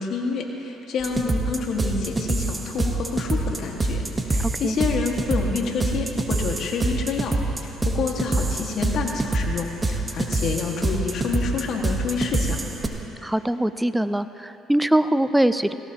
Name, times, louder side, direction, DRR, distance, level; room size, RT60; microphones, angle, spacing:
voice 1, 0.0-4.0 4.3-7.3 7.6-12.6, left 5 dB, 65° left, 1 dB, 1.8 m, -28 dB
sound 1, 1.0-12.9, right 2 dB, 20° right, 1.2 m, -25 dB
voice 2, 4.4-4.8 13.2-15.7, right 1 dB, 5° right, 12 dB, 0.5 m, -22 dB
18.0 x 17.0 x 3.0 m, 3.0 s
supercardioid pair, 85°, 0 cm